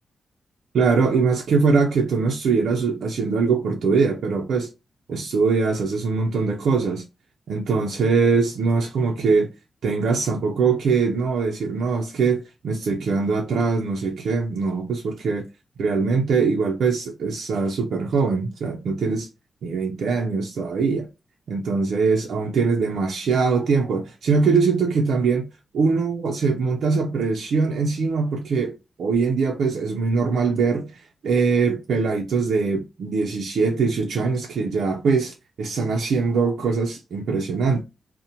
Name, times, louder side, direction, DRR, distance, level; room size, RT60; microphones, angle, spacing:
voice 1, 0.7-4.7 5.1-7.0 7.5-9.5 9.8-15.5 15.8-19.3 19.6-21.1 21.5-25.5 25.7-37.8, right 4 dB, 80° right, 0.4 m, -22 dB
2.8 x 2.0 x 2.6 m
wide cardioid pair, 145°, 0 cm